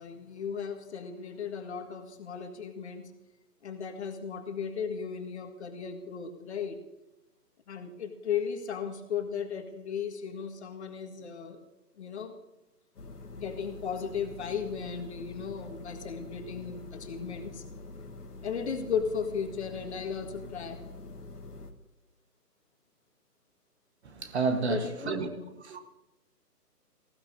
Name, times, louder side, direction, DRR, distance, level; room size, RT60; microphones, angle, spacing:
voice 1, 0.0-3.1 3.6-6.8 7.7-11.6 12.0-12.3 13.3-17.6 18.4-20.8 24.7-25.6, left 6 dB, 40° left, 1.7 m, -36 dB
sound 1, 13.0-21.7, left 2 dB, 65° left, 1.8 m, -45 dB
voice 2, 24.0-25.3 25.7-25.8, right 4 dB, 40° right, 1.3 m, -30 dB
19.5 x 15.5 x 2.7 m
figure-of-eight pair, 145°, 49 cm